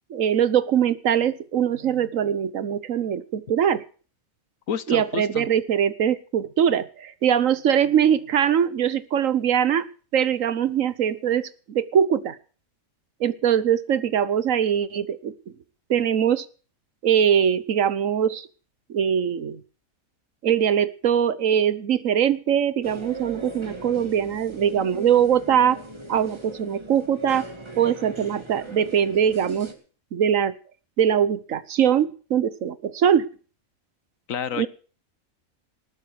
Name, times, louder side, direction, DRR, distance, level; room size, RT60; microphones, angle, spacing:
voice 1, 0.1-3.8 4.9-9.9 10.1-12.4 13.2-15.3 15.9-16.5 17.0-18.5 18.9-19.6 20.4-25.8 26.1-27.4 27.8-29.7 30.1-30.5 31.0-33.3 34.6-34.7, right 9 dB, 70° right, 16 dB, 1.3 m, -22 dB
voice 2, 4.7-5.5 34.3-34.7, left 8 dB, 70° left, 15 dB, 1.4 m, -29 dB
sound 1, 22.8-29.7, right 1 dB, 20° right, 2.2 m, -39 dB
19.5 x 8.3 x 6.6 m, 0.40 s
omnidirectional pair, 1.4 m